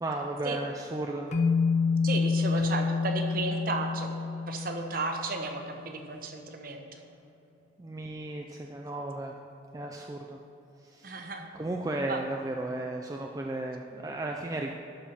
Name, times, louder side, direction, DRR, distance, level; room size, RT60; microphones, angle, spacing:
voice 1, 0.0-1.3 2.5-2.6 7.8-9.3 9.7-10.4 10.8-14.7, right 2 dB, 20° right, 1 dB, 0.3 m, -35 dB
sound 1, 1.3-5.6, left 4 dB, 40° left, 0.5 m, -28 dB
voice 2, 2.0-4.1 4.5-7.0 11.0-11.5 12.1-12.2, right 3 dB, 45° right, 4 dB, 0.8 m, -34 dB
11.5 x 4.4 x 5.7 m, 2.8 s
head